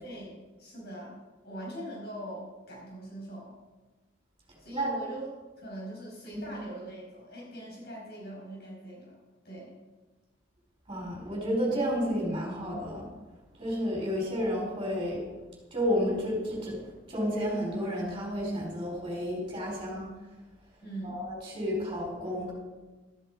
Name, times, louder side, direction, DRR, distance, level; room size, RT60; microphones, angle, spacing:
voice 1, 0.0-3.5 4.6-5.3 5.6-9.2 9.4-9.8 20.8-21.2, right 1 dB, 55° left, -3 dB, 5.4 m, -42 dB
voice 2, 10.9-13.1 13.6-15.2 15.7-16.8 17.1-20.1 21.0-22.5, equal, 25° right, -3 dB, 4.5 m, -31 dB
13.5 x 12.0 x 4.9 m, 1.2 s
head